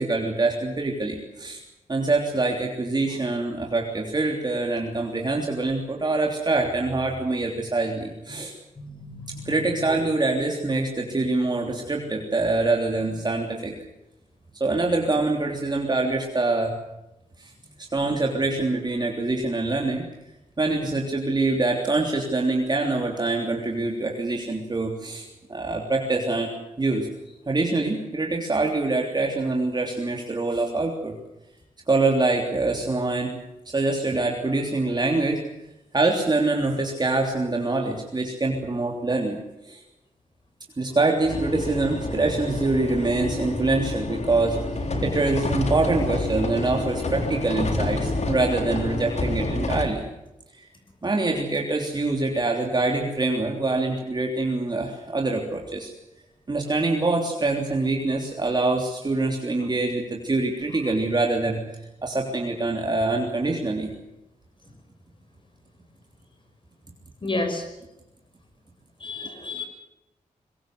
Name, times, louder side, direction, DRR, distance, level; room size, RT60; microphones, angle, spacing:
voice 1, 0.0-1.6 1.9-8.5 9.4-13.7 14.6-16.8 17.4-17.5 17.9-20.0 20.6-27.1 27.5-31.1 31.9-33.4 33.6-35.4 35.9-39.4 39.6-39.8 40.8-44.6 45.0-50.0 50.5-50.7 51.0-55.9 56.5-61.6 62.0-63.9, right 2 dB, 30° right, 1 dB, 3.4 m, -25 dB
voice 2, 8.8-10.0 67.2-67.7 69.0-69.6, left 2 dB, 40° left, 5 dB, 6.3 m, -32 dB
sound 1, 41.3-49.8, left 2 dB, 55° left, 3.7 m, -28 dB
24.0 x 21.5 x 7.9 m, 0.93 s
wide cardioid pair, 95°, 14 cm